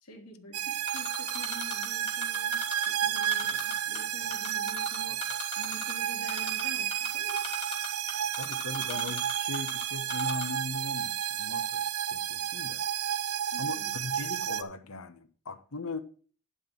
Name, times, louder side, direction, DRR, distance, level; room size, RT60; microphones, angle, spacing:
voice 1, 0.0-5.2 5.6-7.4 8.9-9.0 13.5-13.9, equal, 90° left, 2.5 m, -48 dB
sound 1, 0.5-14.6, right 10 dB, 75° right, 0.7 m, -32 dB
Typing, 0.9-2.9 3.2-4.0 4.3-5.9 6.3-6.6 6.9-9.8 10.1-10.4, left 5 dB, 25° left, 2.9 m, -37 dB
voice 2, 3.1-3.4 3.9-4.1 5.1-5.2 8.4-11.8 12.1-12.8 13.6-16.0, left 3 dB, 65° left, 1.0 m, -39 dB
11.5 x 4.4 x 7.2 m
head